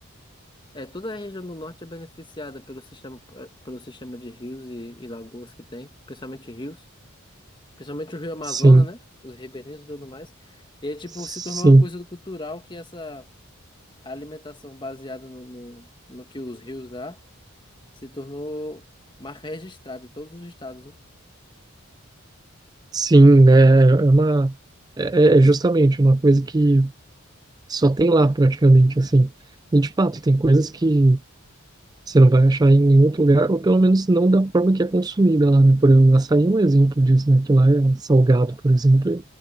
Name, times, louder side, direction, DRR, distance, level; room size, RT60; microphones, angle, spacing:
voice 1, 0.7-6.8 7.8-9.0 9.2-13.3 14.0-17.2 18.0-18.8 19.2-21.0, left 1 dB, 20° left, 1.7 m, -36 dB
voice 2, 8.5-8.9 11.2-11.8 22.9-24.5 25.0-26.9 27.7-29.3 29.7-31.2 32.1-39.2, right 2 dB, 20° right, 0.4 m, -16 dB
head